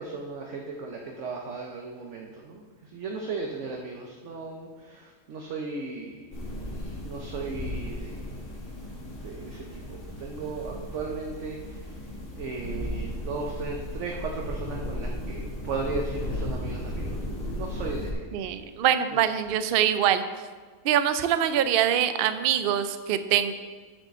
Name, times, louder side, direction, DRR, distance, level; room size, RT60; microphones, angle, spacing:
voice 1, 0.0-6.3 6.7-8.3 9.1-11.9 12.4-18.3 19.1-19.2, right 4 dB, 60° right, 1 dB, 1.1 m, -36 dB
sound 1, 6.3-18.1, left 1 dB, 65° left, 2.3 m, -35 dB
voice 2, 18.3-20.2 20.8-23.5, right 10 dB, 80° right, 11 dB, 0.5 m, -24 dB
7.3 x 5.0 x 6.6 m, 1.5 s
omnidirectional pair, 1.5 m